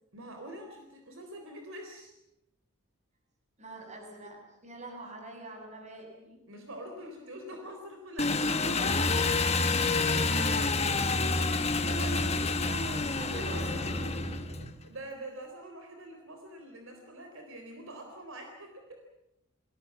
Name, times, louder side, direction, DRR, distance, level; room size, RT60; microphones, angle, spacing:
voice 1, 0.1-2.1 6.5-9.5 11.6-12.3 13.3-14.2 14.8-19.0, right 1 dB, 65° right, 4 dB, 3.9 m, -45 dB
voice 2, 3.6-6.4 11.8-14.6, right 1 dB, 30° right, 3 dB, 7.3 m, -44 dB
Engine, 8.2-14.7, left 4 dB, 30° left, 1.5 m, -29 dB
sound 1, 8.9-14.7, equal, 15° right, 2.8 m, -34 dB
29.5 x 21.0 x 7.2 m, 0.86 s
head